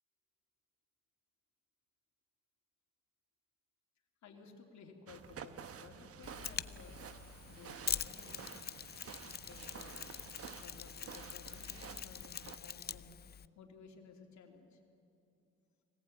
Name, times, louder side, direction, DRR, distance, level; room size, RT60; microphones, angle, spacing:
voice 1, 4.2-7.0 7.5-8.8 9.3-10.0 10.6-13.2 13.5-14.8, left 5 dB, 70° left, 2 dB, 3.0 m, -56 dB
sound 1, 5.1-12.6, right 7 dB, 50° right, 1.1 m, -51 dB
Mechanisms, 6.2-13.5, left 8 dB, 35° left, 0.5 m, -44 dB
21.5 x 18.0 x 8.9 m, 2.6 s
cardioid pair, 90°, 30 cm